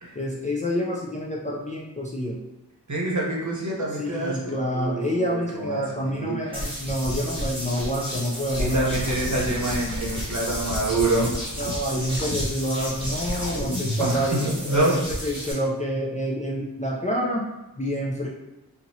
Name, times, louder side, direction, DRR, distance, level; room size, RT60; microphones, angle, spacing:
voice 1, 0.2-2.4 4.0-8.9 9.4-9.5 11.6-17.4 17.8-18.3, equal, 20° left, -4 dB, 0.5 m, -28 dB
voice 2, 2.9-6.6 8.6-11.3 14.0-15.0, right 2 dB, 45° right, -3 dB, 0.9 m, -26 dB
sound 1, 6.5-15.5, equal, 15° right, 1.3 m, -33 dB
sound 2, 8.5-14.1, left 1 dB, 60° left, 0.6 m, -32 dB
2.9 x 2.6 x 2.7 m, 0.94 s
wide cardioid pair, 40°, 41 cm